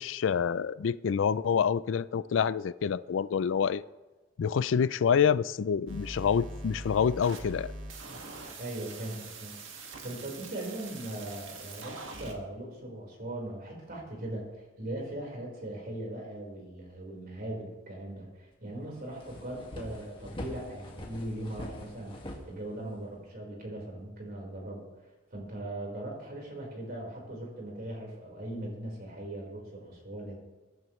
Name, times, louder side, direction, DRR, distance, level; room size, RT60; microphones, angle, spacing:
voice 1, 0.0-3.8 4.4-7.7, left 7 dB, 70° left, 17 dB, 0.4 m, -27 dB
sound 1, 5.9-12.3, right 2 dB, 75° right, 2.0 m, -43 dB
voice 2, 8.6-30.3, right 1 dB, 50° right, -1 dB, 4.5 m, -40 dB
sound 2, 18.5-18.6 18.9-23.2, equal, 25° left, 1.9 m, -43 dB
22.5 x 10.5 x 3.2 m, 1.2 s
head